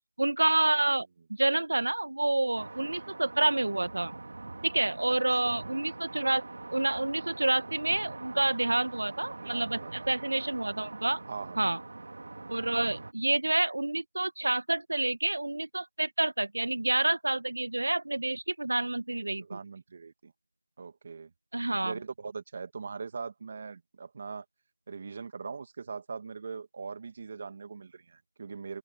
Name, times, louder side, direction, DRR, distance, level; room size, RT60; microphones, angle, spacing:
voice 1, 0.2-1.1 1.4-4.2 4.6-6.4 6.7-11.2 11.6-11.8 12.5-19.6 21.5-21.9, right 2 dB, 75° right, 1.6 m, -28 dB
sound 1, 2.6-13.1, right 2 dB, 55° right, 2.6 m, -43 dB
voice 2, 9.4-10.1 11.3-11.6 19.4-20.3 20.8-21.3 21.8-24.5 24.9-28.8, right 5 dB, 30° right, 2.0 m, -41 dB
open air
figure-of-eight pair, 175°, 0 cm